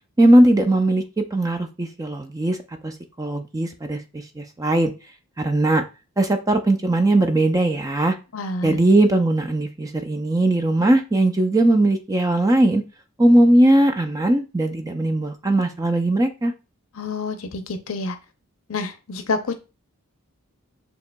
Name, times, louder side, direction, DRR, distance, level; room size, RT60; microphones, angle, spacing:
voice 1, 0.2-2.6 2.8-4.9 5.4-5.8 6.2-8.2 8.6-12.8 13.2-16.5, right 1 dB, 15° right, 6 dB, 0.4 m, -19 dB
voice 2, 8.3-8.8 17.0-18.2 18.7-19.6, left 3 dB, 65° left, 8 dB, 0.6 m, -28 dB
6.9 x 2.9 x 2.2 m, 0.30 s
head